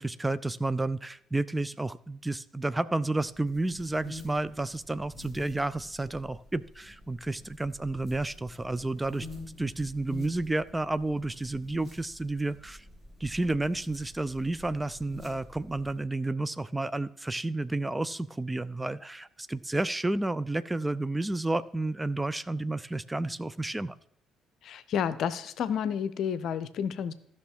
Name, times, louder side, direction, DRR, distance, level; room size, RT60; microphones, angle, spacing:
voice 1, 0.0-9.3 9.6-12.8 13.2-24.0, right 2 dB, 15° right, 16 dB, 0.4 m, -31 dB
sound 1, 3.2-16.0, left 2 dB, 30° right, 4.0 m, -48 dB
voice 2, 24.6-27.1, left 8 dB, 55° left, 14 dB, 0.6 m, -30 dB
14.0 x 6.0 x 4.5 m, 0.71 s
figure-of-eight pair, 45°, 0 cm